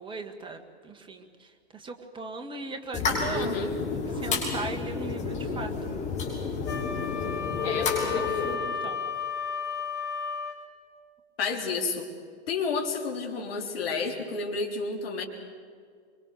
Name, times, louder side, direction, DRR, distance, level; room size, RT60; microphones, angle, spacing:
voice 1, 0.0-3.7 3.9-5.7 7.6-9.0, right 3 dB, 15° right, 6 dB, 1.8 m, -39 dB
sound 1, 2.9-8.6, left 5 dB, 20° left, 6.3 m, -30 dB
voice 2, 3.3-3.7 7.6-8.4 11.4-12.1 12.5-15.2, left 4 dB, 55° left, 2 dB, 3.8 m, -31 dB
Wind instrument woodwind instrument, 6.7-10.6, left 6 dB, 75° left, 3.2 m, -33 dB
25.0 x 24.0 x 6.8 m, 2.1 s
hypercardioid pair, 115°, 34 cm